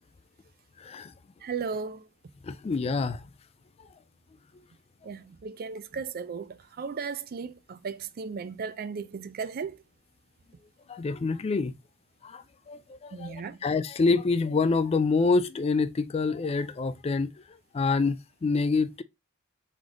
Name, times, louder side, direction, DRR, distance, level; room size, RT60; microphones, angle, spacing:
voice 1, 0.8-1.1 2.4-3.2 10.9-11.7 12.2-17.3 17.7-19.0, left 4 dB, 30° left, 0.3 m, -27 dB
voice 2, 1.4-2.0 5.0-9.8 13.1-13.6, right 5 dB, 45° right, 0.4 m, -36 dB
3.9 x 3.2 x 3.6 m
head